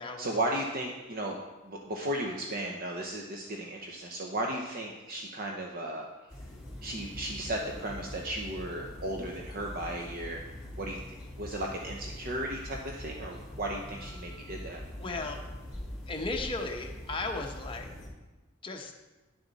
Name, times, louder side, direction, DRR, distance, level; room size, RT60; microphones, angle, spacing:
voice 1, 0.2-1.4 1.6-6.1 6.8-10.4 10.8-11.0 11.4-14.8, right 1 dB, 45° right, 0 dB, 0.8 m, -35 dB
sound 1, 6.3-18.1, left 1 dB, 10° right, 3.4 m, -43 dB
voice 2, 15.0-15.4 16.1-17.9 18.6-18.9, left 3 dB, 25° left, 2 dB, 1.0 m, -35 dB
10.5 x 7.1 x 4.1 m, 1.1 s
head